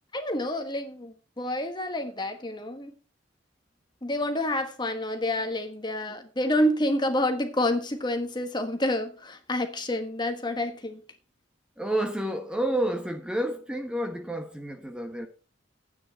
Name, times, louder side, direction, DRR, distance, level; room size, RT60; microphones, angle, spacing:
voice 1, 0.1-2.9 4.0-11.0, left 1 dB, 20° left, 1.3 m, -28 dB
voice 2, 11.8-15.3, right 1 dB, 5° right, 1.1 m, -29 dB
10.5 x 9.0 x 4.5 m
head